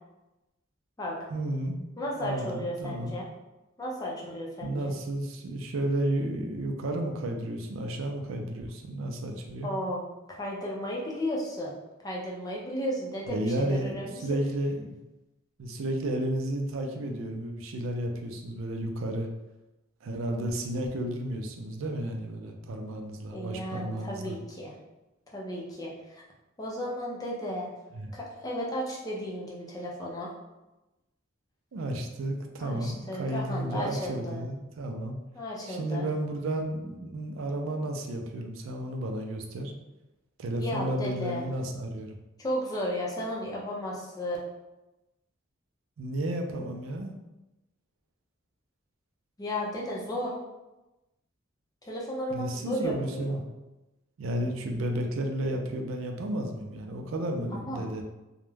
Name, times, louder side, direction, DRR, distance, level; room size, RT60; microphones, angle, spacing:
voice 1, 1.3-1.8 2.2-3.2 4.6-9.7 13.3-15.0 15.6-19.3 20.0-24.4 27.9-28.1 31.7-35.2 35.7-39.7 40.4-42.2 46.0-47.1 52.3-53.4 54.2-58.0, right 1 dB, 85° right, 3 dB, 0.4 m, -32 dB
voice 2, 2.0-3.3 3.8-4.9 9.6-11.7 12.0-14.2 23.3-24.7 25.3-26.2 26.6-27.7 28.1-30.3 32.6-34.4 35.3-36.1 40.6-41.4 42.4-44.4 49.4-50.4 51.8-53.3 57.5-57.9, equal, 20° left, -3 dB, 0.4 m, -34 dB
2.3 x 2.1 x 3.1 m, 1.0 s
head